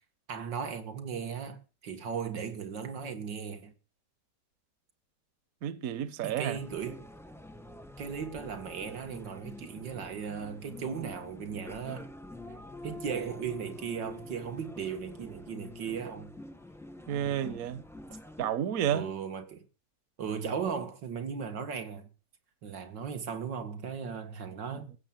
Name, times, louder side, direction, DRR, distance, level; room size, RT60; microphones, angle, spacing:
voice 1, 0.3-3.7 6.2-7.0 8.0-12.1 12.8-16.3 18.9-19.6 20.2-22.1 22.6-24.9, right 7 dB, 85° right, 2.4 m, -37 dB
voice 2, 5.6-6.6 17.1-17.8 18.4-19.1 24.7-24.8, right 10 dB, 60° right, 1.2 m, -31 dB
sound 1, 6.5-18.5, left 2 dB, ahead, 0.6 m, -46 dB
16.0 x 7.4 x 7.5 m
omnidirectional pair, 1.9 m